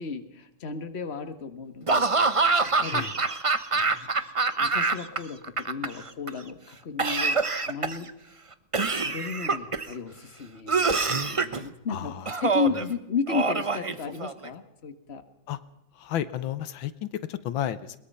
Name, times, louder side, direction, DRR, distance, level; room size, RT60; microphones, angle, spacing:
voice 1, 0.0-2.1 2.6-3.1 3.7-4.1 4.6-8.1 9.0-15.2, left 5 dB, 35° left, 8 dB, 1.8 m, -34 dB
Laughter / Cough, 1.9-5.2 5.4-6.3 7.0-8.1 8.7-9.9 10.7-11.6 12.3-12.8 13.3-14.5, right 4 dB, 30° right, 0.5 m, -25 dB
voice 2, 11.9-12.3 15.5-15.6 16.0-18.0, left 11 dB, 85° left, 13 dB, 1.7 m, -32 dB
21.5 x 21.5 x 5.6 m, 0.82 s
omnidirectional pair, 2.1 m